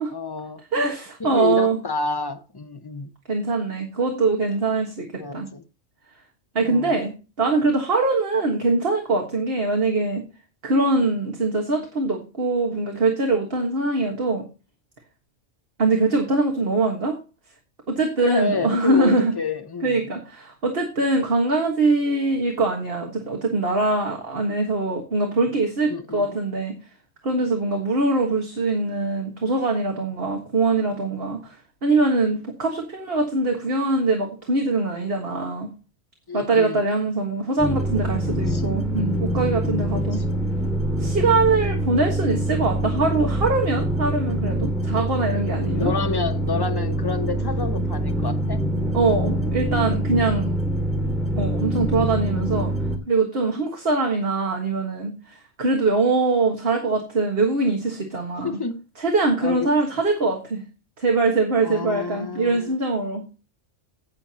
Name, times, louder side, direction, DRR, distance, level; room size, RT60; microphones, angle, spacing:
voice 1, 0.1-0.6 1.2-3.1 5.2-5.6 6.6-7.0 18.2-20.1 25.9-26.4 36.3-36.9 38.5-38.7 39.9-40.4 45.3-48.6 58.4-58.8 59.4-59.7 61.6-62.7, left 4 dB, 25° left, 0.7 m, -29 dB
voice 2, 0.7-1.8 3.3-5.1 5.3-5.5 6.5-10.2 10.6-14.4 15.8-17.2 17.9-19.3 19.8-26.7 27.2-35.7 36.3-40.2 41.0-45.9 48.9-50.5 51.4-52.7 53.1-58.5 59.0-60.6 61.0-63.2, right 3 dB, 50° right, 1.8 m, -23 dB
sound 1, 37.6-53.0, right 1 dB, ahead, 2.4 m, -25 dB
16.5 x 6.9 x 2.9 m
omnidirectional pair, 1.3 m